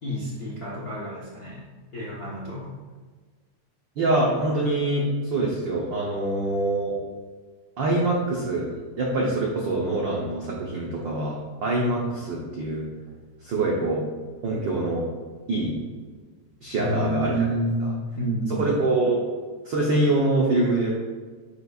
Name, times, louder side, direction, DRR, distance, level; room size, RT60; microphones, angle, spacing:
voice 1, 0.0-2.7 16.8-17.9 18.1-18.7, right 1 dB, 60° left, -7 dB, 0.9 m, -29 dB
voice 2, 4.0-6.9 7.8-8.7 9.0-12.9 13.4-14.0 14.4-15.0 15.5-15.7 16.6-17.5 18.6-19.2 19.6-20.9, right 2 dB, 80° right, -3 dB, 1.0 m, -24 dB
10.5 x 5.4 x 2.4 m, 1.4 s
omnidirectional pair, 3.3 m